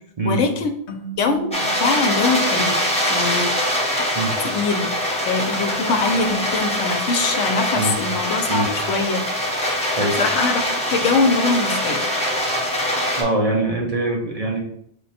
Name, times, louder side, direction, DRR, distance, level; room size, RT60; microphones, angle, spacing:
voice 1, 0.2-0.7 1.2-2.8 3.1-3.5 4.5-4.9 5.3-9.3 10.0-12.0, left 4 dB, 85° left, 6 dB, 1.0 m, -22 dB
sound 1, 0.9-4.0, right 6 dB, 55° left, 0.7 m, -39 dB
sound 2, 1.5-13.2, left 1 dB, 5° left, 0.9 m, -23 dB
voice 2, 13.2-14.6, right 2 dB, 45° right, 0 dB, 0.5 m, -23 dB
4.8 x 2.2 x 4.1 m, 0.68 s
omnidirectional pair, 1.2 m